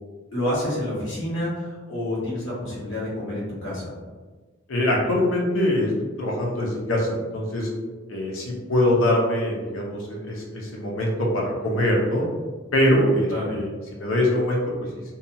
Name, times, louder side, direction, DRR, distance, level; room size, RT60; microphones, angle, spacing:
voice 1, 0.3-3.9 13.3-13.5, left 1 dB, 75° left, -7 dB, 1.3 m, -28 dB
voice 2, 4.7-5.9 6.2-7.7 8.1-12.3 12.7-14.6, left 1 dB, 90° left, -2 dB, 0.7 m, -23 dB
2.7 x 2.3 x 2.7 m, 1.3 s
head